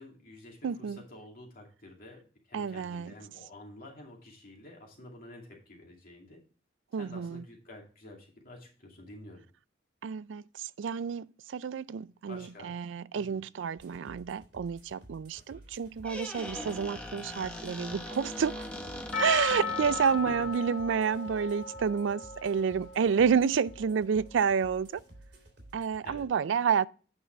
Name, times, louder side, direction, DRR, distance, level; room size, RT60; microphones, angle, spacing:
voice 1, 0.0-6.4 7.0-9.4 12.3-12.7 13.2-13.4 16.5-16.8 20.2-20.3 26.0-26.3, left 1 dB, 50° left, 2.4 m, -49 dB
voice 2, 0.6-1.0 2.5-3.1 6.9-7.4 10.0-18.6 19.2-24.9 25.7-26.9, right 6 dB, 85° right, 0.4 m, -29 dB
sound 1, 13.8-26.3, right 1 dB, 65° right, 2.8 m, -53 dB
Squeak, 15.8-20.4, left 1 dB, 5° left, 1.0 m, -41 dB
Percussion, 19.1-24.1, left 4 dB, 80° left, 1.5 m, -36 dB
8.7 x 5.4 x 4.4 m
head